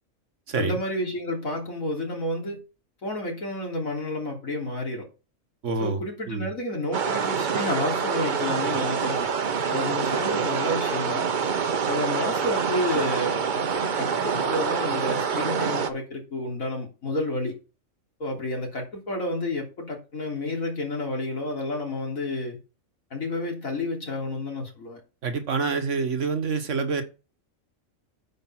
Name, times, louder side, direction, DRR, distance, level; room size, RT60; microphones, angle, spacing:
voice 1, 0.6-2.6 3.0-5.1 5.8-9.3 9.7-11.3 11.9-17.6 18.2-22.6 23.1-25.0, left 1 dB, 90° left, 3.8 m, -30 dB
voice 2, 5.6-6.5 25.2-27.0, right 4 dB, 65° right, 1.5 m, -27 dB
sound 1, 6.9-15.9, right 6 dB, 45° right, 0.8 m, -26 dB
9.3 x 5.3 x 5.9 m
omnidirectional pair, 1.4 m